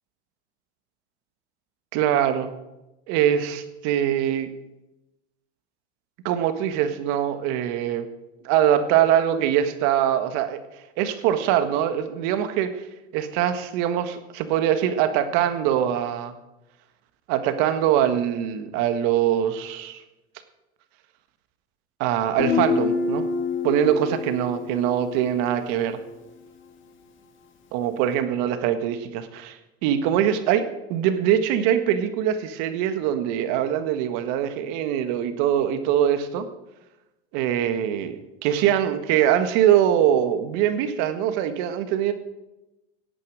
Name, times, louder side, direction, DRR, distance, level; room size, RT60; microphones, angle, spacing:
voice 1, 1.9-2.5 3.1-4.5 6.2-8.1 8.4-10.6 11.0-12.7 13.1-16.3 17.3-20.0 22.0-23.3 23.6-26.0 27.7-36.5 37.3-42.1, right 10 dB, 60° right, 9 dB, 1.7 m, -23 dB
Guitar, 22.4-26.0, left 5 dB, 35° left, 2.2 m, -27 dB
17.5 x 8.5 x 6.4 m, 0.99 s
supercardioid pair, 110°, 35 cm